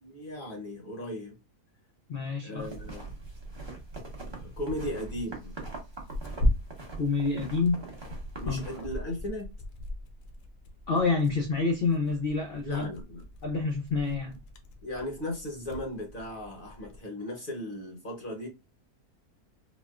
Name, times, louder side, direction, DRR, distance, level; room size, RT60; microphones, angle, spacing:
voice 1, 0.0-1.4 2.4-3.1 4.4-5.5 8.4-9.5 12.6-13.2 14.8-18.5, left 1 dB, 45° left, 0.8 m, -37 dB
voice 2, 2.1-2.7 7.0-7.8 8.5-8.6 10.9-12.9 13.4-14.4, left 4 dB, 85° left, 0.5 m, -28 dB
long walk on the snow, 2.6-8.8, right 3 dB, 25° right, 0.6 m, -42 dB
Tearing, 5.1-17.0, left 1 dB, 70° left, 1.0 m, -37 dB
4.1 x 2.1 x 2.2 m
omnidirectional pair, 1.6 m